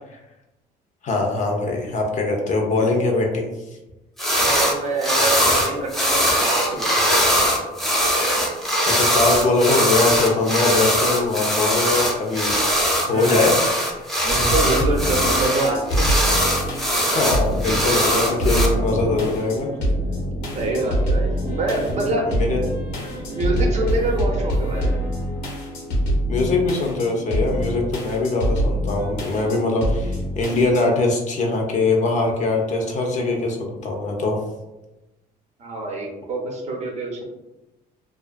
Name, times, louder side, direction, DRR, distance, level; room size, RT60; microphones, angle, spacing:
voice 1, 1.0-3.5 8.9-12.5 13.1-13.6 14.4-14.5 17.1-19.7 22.3-22.6 26.3-34.4, left 3 dB, 45° left, 1 dB, 0.6 m, -22 dB
sound 1, 4.2-4.8 5.0-18.7, equal, ahead, 0.5 m, -21 dB
voice 2, 4.4-7.0 13.1-13.7 14.2-16.1 20.5-22.3 23.3-24.9 35.6-37.2, right 2 dB, 45° right, 0 dB, 0.6 m, -26 dB
sound 2, 14.3-30.8, equal, 85° left, 0.8 m, -25 dB
sound 3, 17.5-24.5, right 1 dB, 85° right, 0.6 m, -33 dB
2.4 x 2.3 x 2.4 m, 1.0 s
cardioid pair, 110°, 17 cm